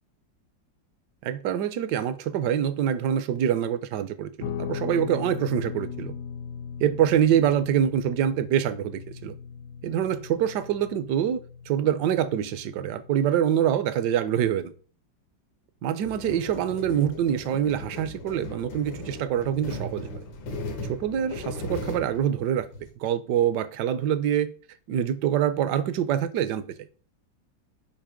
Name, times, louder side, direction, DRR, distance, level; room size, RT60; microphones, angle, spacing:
voice 1, 1.2-6.1 6.8-9.3 9.8-11.4 11.7-14.7 15.8-20.1 20.9-22.7 23.0-24.5 24.9-26.7, right 10 dB, 70° right, 1.1 m, -25 dB
Guitar, 4.4-13.7, left 7 dB, 75° left, 0.8 m, -38 dB
sound 1, 16.0-22.9, left 2 dB, 90° left, 2.1 m, -37 dB
8.7 x 2.9 x 5.0 m
omnidirectional pair, 2.0 m